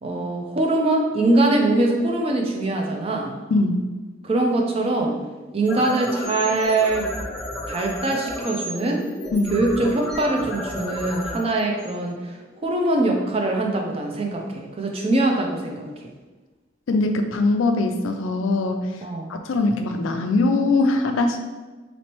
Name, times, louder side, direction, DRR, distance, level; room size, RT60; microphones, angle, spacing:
voice 1, 0.0-3.4 4.2-5.2 5.5-7.1 7.7-9.0 9.5-15.9 19.0-19.3, right 2 dB, 30° right, 1 dB, 0.5 m, -22 dB
voice 2, 3.5-3.9 9.3-9.6 16.9-19.0 19.3-21.5, left 2 dB, 80° left, 6 dB, 0.4 m, -21 dB
sound 1, 5.5-12.6, left 1 dB, 5° left, 0.9 m, -33 dB
4.0 x 3.1 x 3.0 m, 1.3 s
head